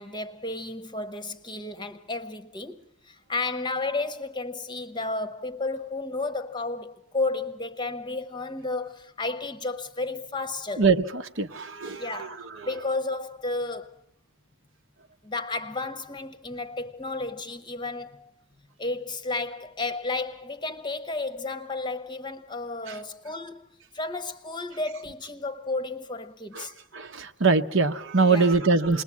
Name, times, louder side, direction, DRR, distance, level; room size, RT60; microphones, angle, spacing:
voice 1, 0.0-10.8 12.0-14.0 15.2-18.3 18.8-26.7 28.3-28.5, left 3 dB, 20° left, 1.0 m, -32 dB
voice 2, 10.8-12.3 12.6-12.7 26.5-26.7 26.9-29.0, right 4 dB, 55° right, 1.0 m, -23 dB
28.5 x 20.5 x 8.5 m
head